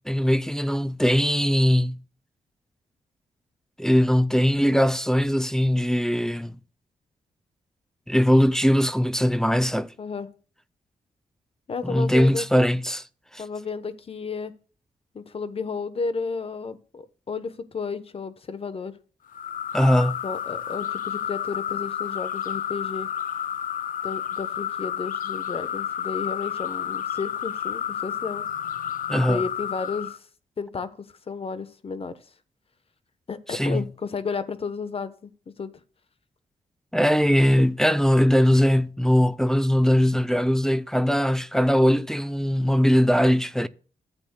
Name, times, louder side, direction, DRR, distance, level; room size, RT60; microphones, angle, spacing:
voice 1, 0.1-2.0 3.8-6.5 8.1-9.9 11.8-13.0 13.3-13.4 19.7-20.2 29.1-29.4 33.5-33.8 36.9-43.7, equal, 5° left, 0.4 m, -20 dB
voice 2, 10.0-10.3 11.7-12.5 13.4-14.5 15.1-19.0 20.2-23.1 24.0-28.4 29.1-30.3 30.6-32.2 33.3-35.7 37.6-37.7, left 4 dB, 45° left, 1.0 m, -32 dB
sound 1, 19.3-30.2, left 9 dB, 75° left, 0.5 m, -31 dB
13.5 x 8.3 x 2.2 m
cardioid pair, 95°, 14 cm